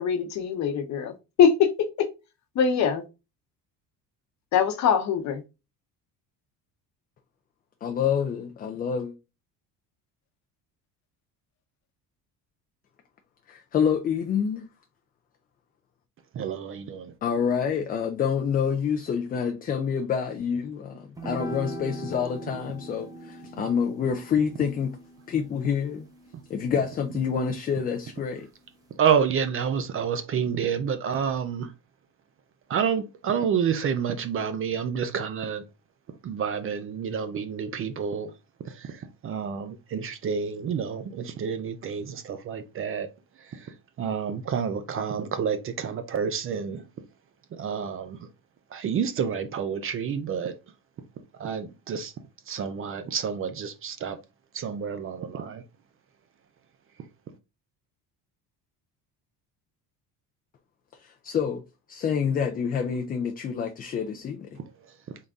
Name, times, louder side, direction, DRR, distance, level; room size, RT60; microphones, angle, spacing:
voice 1, 0.0-2.1 2.6-3.0 4.5-5.4, left 7 dB, 45° left, 0.8 m, -23 dB
voice 2, 7.8-9.1 13.5-14.7 17.2-25.0 25.3-26.1 26.5-28.5 60.9-61.6 61.9-64.5, left 7 dB, 25° left, 0.3 m, -27 dB
voice 3, 16.3-17.1 29.0-31.7 32.7-35.6 36.2-38.3 38.6-43.1 43.4-46.9 47.5-48.3 48.7-50.5 51.4-52.1 52.5-54.2 54.5-55.6, right 7 dB, 35° right, 0.5 m, -29 dB
sound 1, 21.2-27.7, equal, 10° right, 0.8 m, -41 dB
3.9 x 3.7 x 3.5 m
cardioid pair, 165°, 38 cm